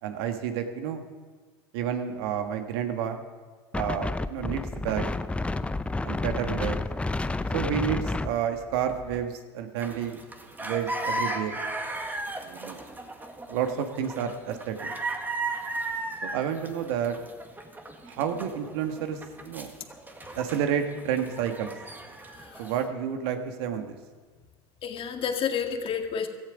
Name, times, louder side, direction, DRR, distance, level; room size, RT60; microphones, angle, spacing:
voice 1, 0.0-1.0 1.7-3.2 3.7-5.1 6.0-6.8 7.5-10.2 10.6-11.6 12.4-12.8 13.5-14.9 16.2-17.2 18.1-19.7 20.3-21.7 22.6-24.0, right 8 dB, 70° right, 6 dB, 1.7 m, -30 dB
Wind, 3.7-9.2, left 2 dB, 10° left, 0.6 m, -30 dB
sound 1, 9.8-22.8, right 2 dB, 15° right, 1.8 m, -36 dB
voice 2, 24.8-26.3, left 7 dB, 40° left, 5 dB, 1.9 m, -30 dB
16.0 x 14.0 x 5.2 m, 1.5 s
hypercardioid pair, 85°, 14 cm